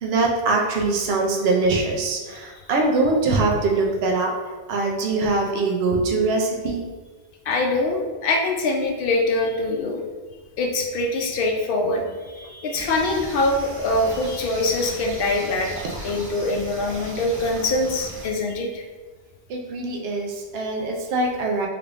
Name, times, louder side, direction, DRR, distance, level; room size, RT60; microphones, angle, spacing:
voice 1, 0.0-4.3 4.7-6.8 19.5-21.7, right 3 dB, 70° right, 1 dB, 0.8 m, -22 dB
voice 2, 7.5-10.0 10.6-12.0 12.3-15.7 16.0-18.8, left 2 dB, 60° left, 2 dB, 0.7 m, -23 dB
sound 1, 12.7-18.3, right 1 dB, 20° right, 0.4 m, -37 dB
3.4 x 3.3 x 2.5 m, 1.3 s
omnidirectional pair, 1.1 m